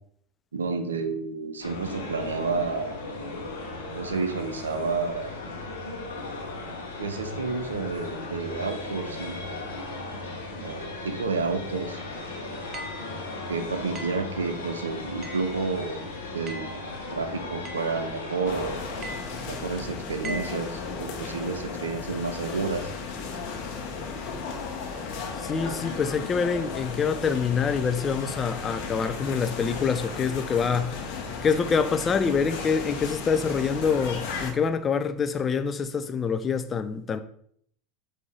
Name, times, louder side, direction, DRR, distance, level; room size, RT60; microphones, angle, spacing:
voice 1, 0.5-2.9 3.9-5.3 7.0-9.5 10.6-12.0 13.5-16.0 16.3-18.8 19.5-22.9, right 4 dB, 90° right, 0.5 m, -30 dB
sound 1, 1.6-19.2, left 2 dB, 85° left, 1.0 m, -37 dB
sound 2, 12.7-13.1 13.9-14.3 15.2-15.5 16.5-16.8 17.6-17.9 19.0-19.3 20.2-20.6, right 2 dB, 35° right, 0.8 m, -39 dB
sound 3, 18.5-34.5, left 4 dB, 60° left, 0.9 m, -35 dB
voice 2, 25.4-37.2, left 6 dB, 30° left, 0.4 m, -26 dB
5.1 x 2.6 x 3.2 m
hypercardioid pair, 85°, 0 cm